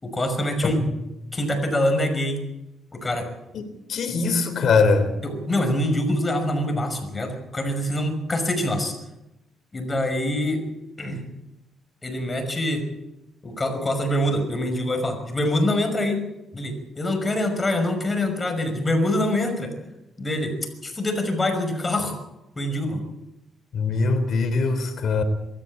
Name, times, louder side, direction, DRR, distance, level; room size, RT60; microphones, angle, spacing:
voice 1, 0.0-0.8 1.3-2.4 2.9-3.3 4.1-4.2 5.2-8.9 9.7-10.7 11.0-11.2 12.0-12.9 13.4-16.3 16.5-19.7 20.2-20.6 20.8-22.2 22.6-23.0, left 1 dB, 25° left, 5.6 m, -25 dB
voice 2, 3.9-5.1 23.7-25.2, left 4 dB, 60° left, 3.4 m, -21 dB
23.0 x 14.0 x 8.6 m
cardioid pair, 90°, 0 cm